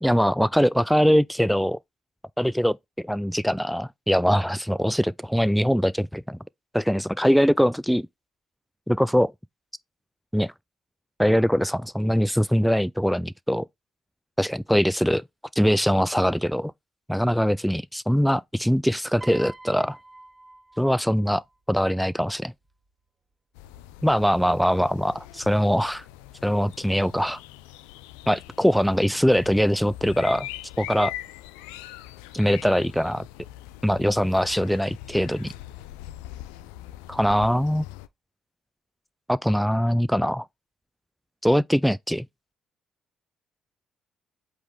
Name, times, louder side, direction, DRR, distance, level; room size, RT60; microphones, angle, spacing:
voice 1, 0.0-1.8 2.4-2.8 3.0-6.4 6.7-8.1 8.9-9.3 10.3-10.5 11.2-13.7 14.4-15.2 15.6-16.7 17.1-20.0 20.8-21.4 21.7-22.5 24.0-26.0 26.4-27.4 28.3-30.5 30.8-31.1 32.3-33.3 33.8-35.5 37.1-37.9 39.3-40.5 41.4-42.3, equal, ahead, 0.3 m, -22 dB
Piano, 19.2-21.6 22.6-22.9, right 2 dB, 25° right, 2.7 m, -46 dB
sound 1, 23.5-38.1, left 15 dB, 85° left, 0.4 m, -42 dB
8.0 x 3.2 x 3.7 m
supercardioid pair, 60°, 0 cm